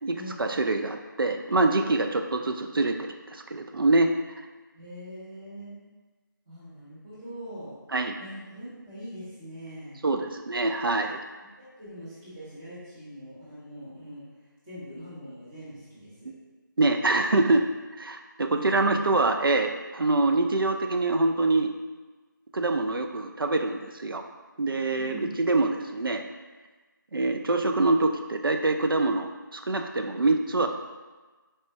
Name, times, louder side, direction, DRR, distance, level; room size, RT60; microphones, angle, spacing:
voice 1, 0.0-4.1 7.9-8.1 10.0-11.2 16.3-16.4 16.8-17.6 18.0-21.7 22.5-24.2 24.6-26.2 27.1-30.7, right 2 dB, 90° right, 5 dB, 0.4 m, -25 dB
voice 2, 4.7-5.8 6.5-7.7 8.2-10.0 11.4-14.2 14.6-16.3 17.3-17.6 18.4-19.0 25.0-25.4, equal, 5° right, -13 dB, 0.5 m, -42 dB
4.3 x 2.1 x 4.5 m, 1.3 s
figure-of-eight pair, 170°, 11 cm